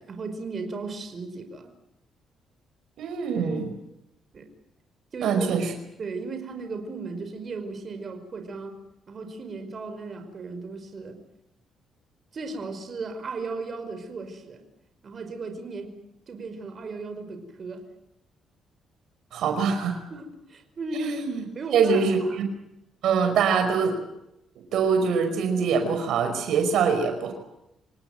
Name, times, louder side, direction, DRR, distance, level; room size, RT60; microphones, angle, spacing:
voice 1, 0.0-1.7 4.3-4.5 5.1-5.5 6.0-8.8 9.1-11.2 12.3-14.6 15.0-16.0 16.3-17.9 20.1-21.2 21.5-22.5, right 3 dB, 45° right, 6 dB, 5.1 m, -36 dB
voice 2, 3.0-3.7 5.2-5.7 19.3-20.0 21.0-21.4 21.7-22.5 23.0-24.0 24.7-27.3, right 6 dB, 80° right, 7 dB, 5.3 m, -24 dB
27.0 x 18.0 x 9.1 m, 0.85 s
cardioid pair, 90°, 0 cm